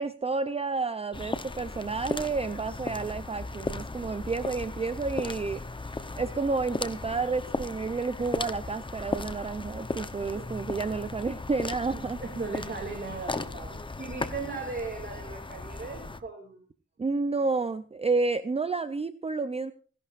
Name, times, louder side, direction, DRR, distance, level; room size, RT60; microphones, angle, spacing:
voice 1, 0.0-12.2 17.0-19.7, right 4 dB, 20° right, 12 dB, 0.5 m, -30 dB
sound 1, 1.1-16.2, left 3 dB, 15° left, 0.8 m, -36 dB
voice 2, 11.9-13.7 14.0-16.6, right 4 dB, 35° right, 2 dB, 2.7 m, -37 dB
28.5 x 11.5 x 2.5 m, 0.40 s
wide cardioid pair, 145°, 29 cm